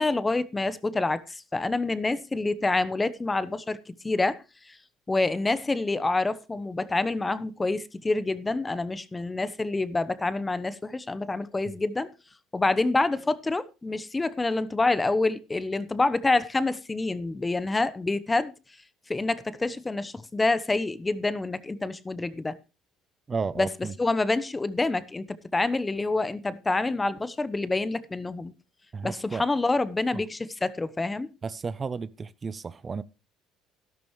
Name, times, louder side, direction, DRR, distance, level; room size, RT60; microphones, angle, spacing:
voice 1, 0.0-3.8 4.0-4.4 4.7-4.8 5.1-12.1 12.5-18.5 19.1-22.5 23.6-23.7 24.0-25.3 25.5-28.5 29.0-31.3, left 2 dB, 20° left, 0.9 m, -27 dB
voice 2, 23.3-23.9 28.9-29.4 31.4-33.0, right 5 dB, 30° right, 0.5 m, -33 dB
12.0 x 12.0 x 3.1 m
supercardioid pair, 90°, 0 cm